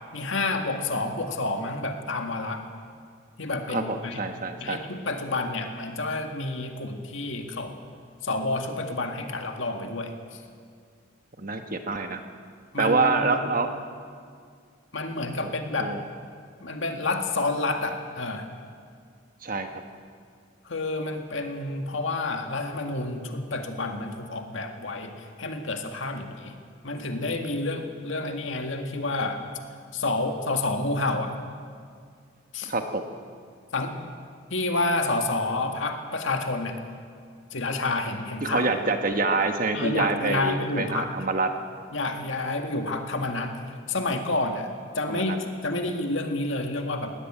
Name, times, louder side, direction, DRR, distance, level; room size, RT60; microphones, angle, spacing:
voice 1, 0.1-2.6 3.4-4.2 4.6-7.8 8.2-10.1 12.7-13.4 14.9-15.9 16.6-18.5 20.7-26.6 26.8-29.4 29.9-31.3 32.5-32.7 33.7-34.0 34.5-36.8 37.5-38.6 39.7-41.1 41.9-43.6 43.9-47.1, left 2 dB, 65° left, 4 dB, 1.9 m, -29 dB
voice 2, 3.7-4.8 11.4-12.2 12.8-13.7 15.4-15.5 15.8-16.0 19.4-19.7 32.7-33.0 38.4-41.5 45.1-45.4, right 3 dB, 40° right, 6 dB, 1.3 m, -26 dB
21.5 x 17.5 x 8.8 m, 2.1 s
head